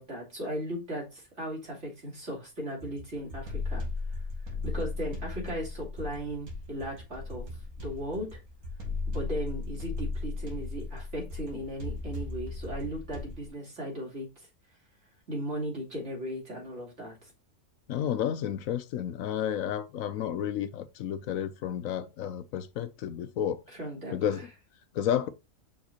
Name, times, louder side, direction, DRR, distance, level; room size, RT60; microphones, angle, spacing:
voice 1, 0.0-3.8 4.6-7.5 7.8-8.4 9.1-14.5 15.3-17.3 23.7-24.5, equal, 50° right, 3.6 m, -37 dB
sound 1, 2.8-13.5, left 3 dB, 80° right, 2.7 m, -37 dB
voice 2, 17.9-23.6 24.1-24.5 24.9-25.3, left 10 dB, 75° left, 1.0 m, -31 dB
6.0 x 4.8 x 4.4 m
omnidirectional pair, 1.5 m